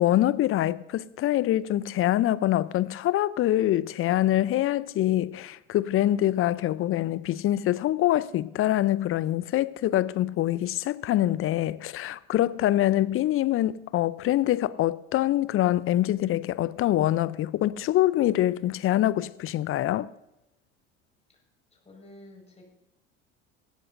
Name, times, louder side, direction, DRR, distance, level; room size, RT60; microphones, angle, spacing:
voice 1, 0.0-20.1, left 13 dB, 40° left, 0.6 m, -25 dB
voice 2, 12.6-13.0 21.3-21.4 21.7-22.7, left 1 dB, 20° left, 5.0 m, -51 dB
17.5 x 13.5 x 2.6 m
hypercardioid pair, 70°, 35 cm